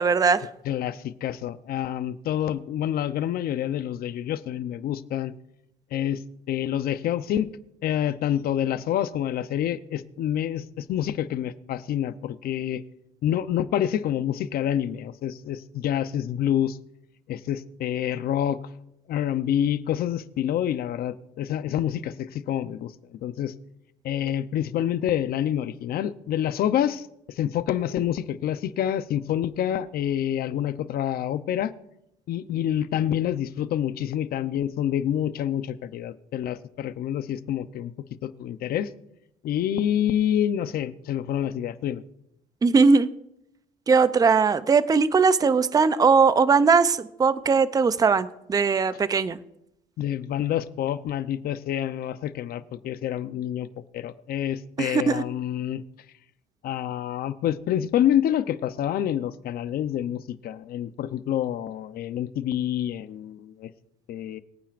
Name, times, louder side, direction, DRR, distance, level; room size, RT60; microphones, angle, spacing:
voice 1, 0.0-0.5 42.6-43.1 43.9-49.4 54.8-55.2, right 5 dB, 20° right, 14 dB, 0.5 m, -20 dB
voice 2, 0.6-5.3 5.9-6.2 6.5-7.5 7.8-12.8 13.2-16.8 17.3-18.6 19.1-22.9 23.2-23.5 24.0-27.1 27.4-31.7 32.3-37.9 38.2-38.9 39.4-42.0 50.0-53.7 53.9-55.8 56.6-63.7 64.1-64.4, left 10 dB, 65° left, 13 dB, 0.7 m, -27 dB
23.0 x 9.1 x 2.5 m, 0.82 s
cardioid pair, 110°, 17 cm